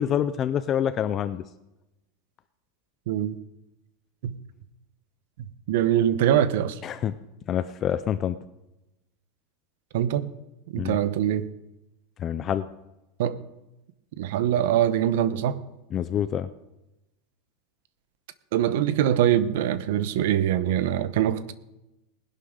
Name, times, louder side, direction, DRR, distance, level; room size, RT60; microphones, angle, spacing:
voice 1, 0.0-1.4 6.8-7.2 7.5-8.3 10.8-11.0 12.2-12.6 15.9-16.5, left 9 dB, 25° left, 0.4 m, -26 dB
voice 2, 3.1-3.4 4.2-4.4 5.4-6.8 9.9-10.3 10.7-11.5 13.2-13.4 14.2-15.6 18.5-21.5, right 11 dB, 65° right, 0.9 m, -23 dB
19.5 x 11.5 x 3.8 m
supercardioid pair, 170°, 0 cm